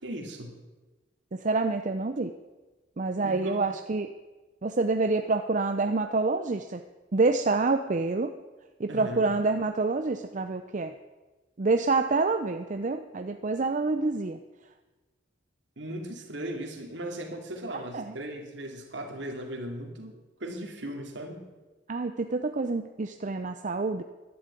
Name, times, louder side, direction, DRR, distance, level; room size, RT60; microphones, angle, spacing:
voice 1, 0.0-0.5 3.2-3.6 8.9-9.3 15.8-21.5, right 1 dB, 65° right, 2 dB, 2.5 m, -37 dB
voice 2, 1.3-2.3 3.0-4.1 4.6-6.8 7.1-8.3 8.8-10.9 11.6-14.4 17.7-18.2 21.9-24.0, right 3 dB, 40° right, 7 dB, 0.6 m, -27 dB
12.0 x 11.0 x 8.3 m, 1.2 s
head